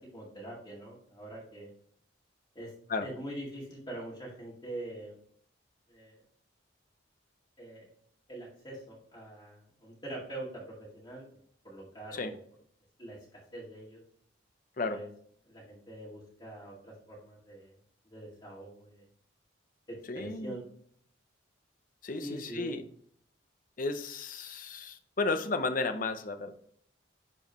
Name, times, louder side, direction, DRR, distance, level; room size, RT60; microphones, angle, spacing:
voice 1, 0.1-1.7 2.5-2.7 3.0-5.1 5.9-6.2 7.6-7.9 8.3-11.2 11.6-12.4 13.0-14.0 14.9-15.1 15.4-17.7 18.0-19.0 19.9-20.6 22.2-22.7, right 1 dB, 25° left, -5 dB, 2.2 m, -44 dB
voice 2, 20.1-20.5 22.0-22.8 23.8-26.6, left 3 dB, 45° left, 8 dB, 0.7 m, -33 dB
10.5 x 4.6 x 3.0 m, 0.63 s
head